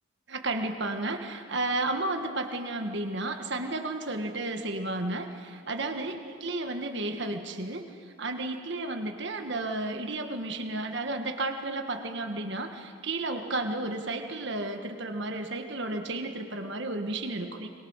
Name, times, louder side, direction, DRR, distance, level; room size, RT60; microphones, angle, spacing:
voice 1, 0.3-7.9 8.2-17.7, right 2 dB, 55° right, 5 dB, 1.5 m, -32 dB
22.0 x 21.5 x 6.4 m, 2.3 s
head